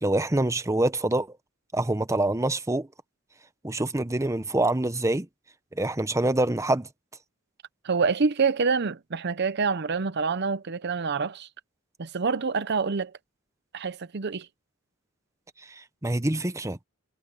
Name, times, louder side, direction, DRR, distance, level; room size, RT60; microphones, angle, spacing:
voice 1, 0.0-1.4 1.7-2.9 3.6-5.3 5.7-6.9 15.7-16.8, right 2 dB, 15° right, 0.8 m, -25 dB
voice 2, 7.8-11.5 12.0-13.1 13.7-14.5, right 5 dB, 55° right, 0.7 m, -26 dB
head